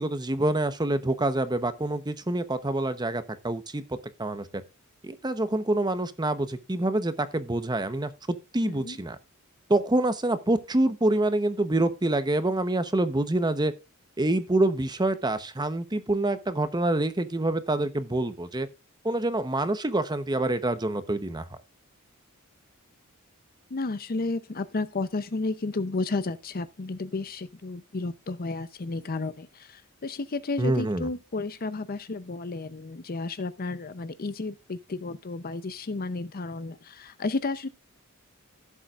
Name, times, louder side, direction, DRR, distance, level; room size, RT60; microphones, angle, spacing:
voice 1, 0.0-3.8 4.2-4.6 5.0-9.2 9.7-13.7 14.2-18.7 19.0-21.4 30.6-31.1, right 2 dB, 20° right, 0.9 m, -26 dB
voice 2, 8.6-9.0 23.7-37.7, left 3 dB, 45° left, 0.7 m, -32 dB
16.0 x 7.3 x 2.5 m
head